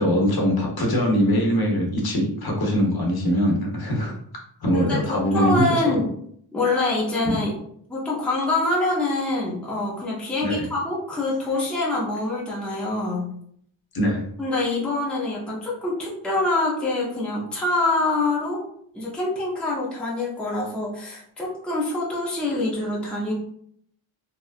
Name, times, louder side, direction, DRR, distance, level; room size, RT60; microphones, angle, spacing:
voice 1, 0.0-4.1 4.6-6.0 7.3-7.4 10.4-10.7 13.9-14.2, equal, 50° left, -1 dB, 0.7 m, -22 dB
voice 2, 4.7-6.1 6.5-7.5 7.9-13.3 14.4-18.6 18.9-23.3, left 2 dB, ahead, -5 dB, 0.5 m, -25 dB
2.8 x 2.3 x 2.3 m, 0.67 s
wide cardioid pair, 130°, 48 cm